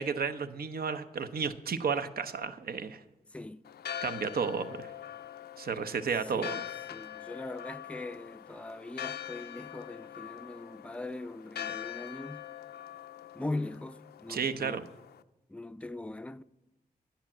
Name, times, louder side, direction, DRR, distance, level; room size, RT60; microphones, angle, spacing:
voice 1, 0.0-3.0 4.0-4.9 5.6-6.6 14.3-14.9, right 5 dB, 70° right, 0.8 m, -32 dB
voice 2, 3.3-3.7 6.3-6.6 6.9-12.5 13.3-14.9 15.5-16.4, left 2 dB, 5° left, 0.4 m, -40 dB
Church bell, 3.7-15.2, left 11 dB, 80° left, 0.5 m, -43 dB
10.0 x 8.8 x 7.3 m
cardioid pair, 50°, 16 cm